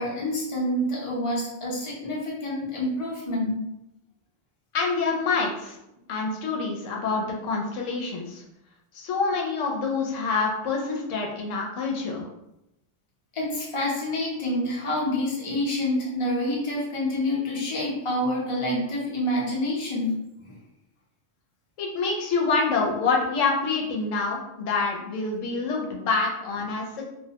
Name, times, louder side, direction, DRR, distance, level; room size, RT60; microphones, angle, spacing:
voice 1, 0.0-3.6 13.3-20.2 20.5-20.6, left 1 dB, 30° left, -5 dB, 0.7 m, -27 dB
voice 2, 4.7-5.8 6.1-8.4 8.9-12.3 21.8-27.1, left 4 dB, 85° left, 0 dB, 0.9 m, -26 dB
2.4 x 2.1 x 2.8 m, 0.85 s
omnidirectional pair, 1.3 m